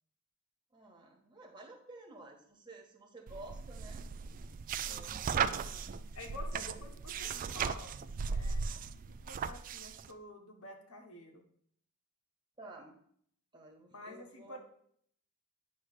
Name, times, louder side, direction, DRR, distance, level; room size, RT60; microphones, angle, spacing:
voice 1, 0.7-4.1 4.8-5.9 6.5-6.8 12.6-13.0 13.5-14.6, right 2 dB, 20° right, 1 dB, 1.3 m, -53 dB
sound 1, 3.3-10.1, right 6 dB, 40° right, 0.3 m, -37 dB
voice 2, 4.9-5.7 6.1-8.0 8.3-8.6 9.1-11.4 13.8-14.6, left 2 dB, 70° left, 3 dB, 1.3 m, -50 dB
9.2 x 3.2 x 6.4 m, 0.65 s
head